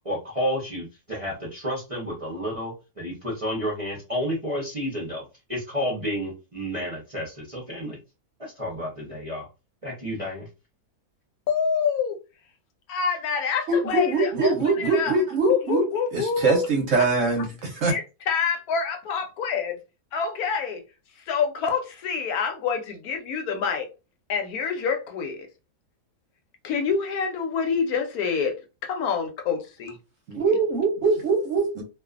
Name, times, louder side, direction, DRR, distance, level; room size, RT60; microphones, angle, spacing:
voice 1, 0.0-8.0 8.4-9.5 9.8-10.5, equal, 35° right, 0.6 m, -31 dB
voice 2, 11.5-12.2 12.9-15.1 15.4-16.7 17.0-17.1 17.9-18.0 18.3-19.8 20.1-20.8 21.3-23.9 24.3-25.5 26.6-28.6 28.8-30.0, left 6 dB, 70° left, 1.0 m, -26 dB
voice 3, 13.7-15.8 16.1-18.0 30.3-31.8, right 3 dB, 60° right, 0.9 m, -23 dB
2.5 x 2.3 x 2.4 m
omnidirectional pair, 1.7 m